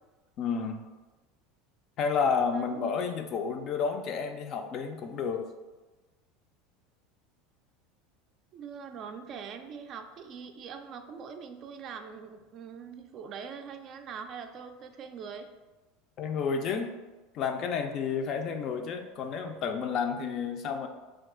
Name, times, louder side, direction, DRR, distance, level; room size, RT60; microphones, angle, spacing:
voice 1, 0.4-0.8 2.0-5.5 16.2-16.9 17.3-20.9, left 6 dB, 45° left, 6 dB, 0.4 m, -30 dB
voice 2, 2.5-2.8 8.5-15.5, right 6 dB, 45° right, 7 dB, 0.3 m, -43 dB
2.6 x 2.4 x 3.7 m, 1.2 s
supercardioid pair, 110°, 0 cm